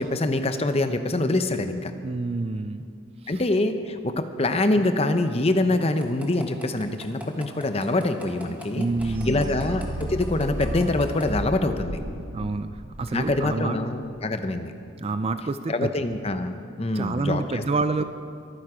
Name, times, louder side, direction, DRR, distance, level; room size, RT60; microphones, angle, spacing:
voice 1, 0.0-1.9 3.3-8.9 9.3-12.0 13.1-14.7 15.7-17.6, left 2 dB, 30° left, 8 dB, 0.7 m, -25 dB
voice 2, 2.0-2.8 3.2-3.4 8.7-9.6 12.3-13.8 15.0-15.9 16.9-18.0, right 3 dB, 25° right, 10 dB, 0.4 m, -28 dB
sound 1, 5.8-11.2, equal, 5° right, 1.4 m, -42 dB
sound 2, 9.0-13.9, right 1 dB, 85° right, 3.4 m, -34 dB
23.0 x 9.2 x 4.9 m, 2.3 s
head